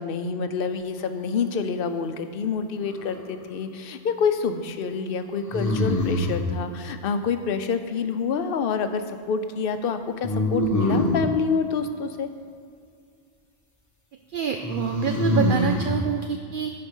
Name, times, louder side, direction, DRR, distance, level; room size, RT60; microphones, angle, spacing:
voice 1, 0.0-12.3, left 5 dB, 60° left, 8 dB, 0.8 m, -27 dB
sound 1, 2.8-3.5 5.5-6.5 10.2-11.3 14.6-15.9, left 1 dB, 15° left, 1.0 m, -24 dB
voice 2, 14.3-16.7, right 7 dB, 60° right, 5 dB, 0.6 m, -27 dB
14.0 x 4.8 x 5.4 m, 2.3 s
omnidirectional pair, 1.1 m